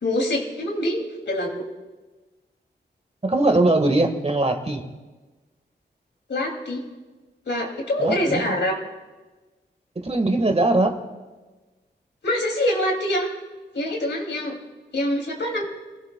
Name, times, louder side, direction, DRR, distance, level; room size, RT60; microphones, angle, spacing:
voice 1, 0.0-1.7 6.3-6.8 7.5-8.8 12.2-13.3 13.7-14.6 14.9-15.7, left 1 dB, 75° left, 1 dB, 2.8 m, -25 dB
voice 2, 3.2-4.8 8.0-8.5 9.9-11.0, right 2 dB, 35° right, 5 dB, 1.7 m, -21 dB
27.5 x 16.5 x 2.3 m, 1.2 s
wide cardioid pair, 70°, 18 cm